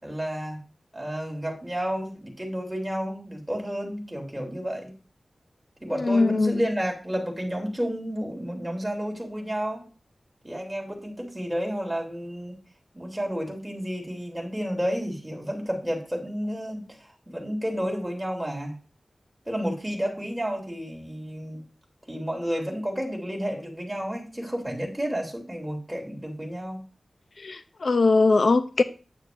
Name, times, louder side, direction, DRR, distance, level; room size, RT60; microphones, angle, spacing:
voice 1, 0.0-0.6 0.9-4.9 5.8-9.8 10.4-12.5 12.9-18.7 19.5-21.6 22.1-26.8, equal, 10° right, 3.0 m, -31 dB
voice 2, 6.0-6.6 27.4-28.8, left 3 dB, 65° left, 0.5 m, -21 dB
9.2 x 9.2 x 2.6 m
wide cardioid pair, 100°, 0 cm